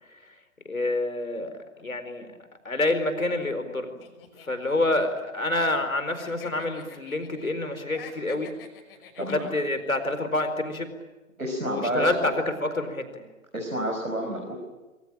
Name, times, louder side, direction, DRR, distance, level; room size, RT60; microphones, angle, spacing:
voice 1, 0.6-2.3 2.6-3.9 4.5-8.5 9.2-10.9 11.6-13.2, left 2 dB, 80° left, 8 dB, 4.4 m, -27 dB
sound 1, 4.0-5.9 6.1-7.5 7.8-9.8, left 7 dB, 40° left, 5.6 m, -48 dB
voice 2, 9.2-9.5 11.4-12.3 13.5-14.6, equal, 90° right, 1 dB, 5.7 m, -29 dB
25.5 x 23.5 x 8.9 m, 1.1 s
figure-of-eight pair, 120°, 41 cm